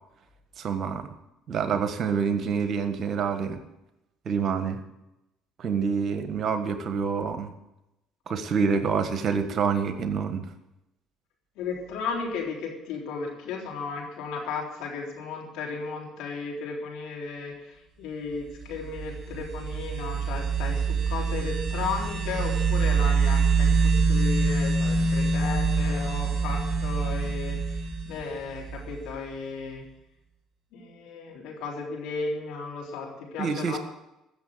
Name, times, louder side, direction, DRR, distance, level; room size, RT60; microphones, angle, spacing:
voice 1, 0.6-1.1 1.5-3.6 4.2-4.8 5.6-7.5 8.3-10.5 33.4-33.8, right 6 dB, 50° right, 9 dB, 1.5 m, -27 dB
voice 2, 11.6-27.8 28.0-29.8 30.7-33.8, left 4 dB, 70° left, -1 dB, 3.9 m, -35 dB
sound 1, 18.6-29.2, right 4 dB, 30° right, 2.8 m, -25 dB
15.0 x 7.1 x 9.0 m, 0.90 s
hypercardioid pair, 55°, 0 cm